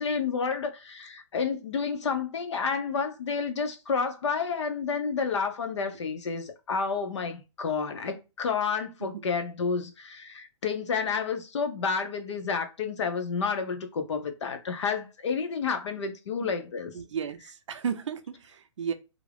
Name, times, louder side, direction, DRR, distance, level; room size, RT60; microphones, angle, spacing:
voice 1, 0.0-16.9, left 5 dB, 65° left, 0.6 m, -30 dB
voice 2, 16.9-18.9, right 7 dB, 70° right, 0.5 m, -33 dB
2.4 x 2.0 x 3.2 m
hypercardioid pair, 175°, 16 cm